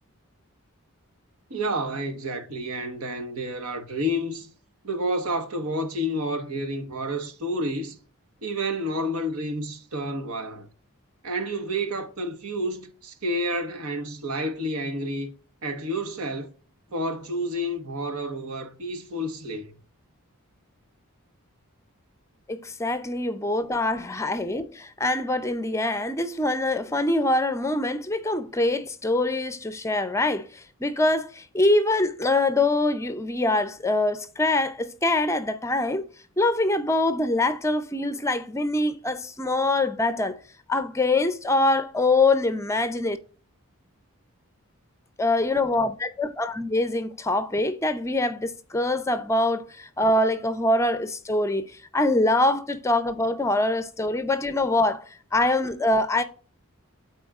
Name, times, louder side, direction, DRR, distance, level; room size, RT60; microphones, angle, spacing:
voice 1, 1.5-4.5 4.8-8.0 8.4-10.7 11.2-15.3 15.6-16.5 16.9-19.7, equal, 80° right, 1.3 m, -30 dB
voice 2, 22.5-36.1 36.4-40.4 40.7-43.2 45.2-56.2, left 2 dB, 15° left, 0.5 m, -24 dB
12.5 x 4.3 x 2.4 m
head